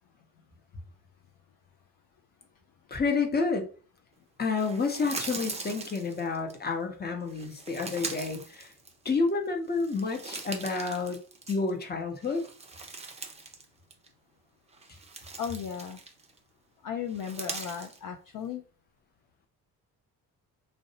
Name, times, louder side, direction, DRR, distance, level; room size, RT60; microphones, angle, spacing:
voice 1, 2.9-3.7 4.4-8.7 9.0-11.2 11.5-12.4, left 4 dB, 20° left, 4 dB, 0.8 m, -29 dB
sound 1, 4.5-6.6 7.3-9.3 9.7-11.8 12.2-13.6 13.9-14.1 14.7-16.4 17.1-18.0, right 3 dB, 15° right, 0.5 m, -41 dB
voice 2, 15.4-16.0 16.8-18.6, left 8 dB, 45° left, 4 dB, 0.5 m, -35 dB
2.5 x 2.0 x 2.7 m, 0.38 s
hypercardioid pair, 50°, 47 cm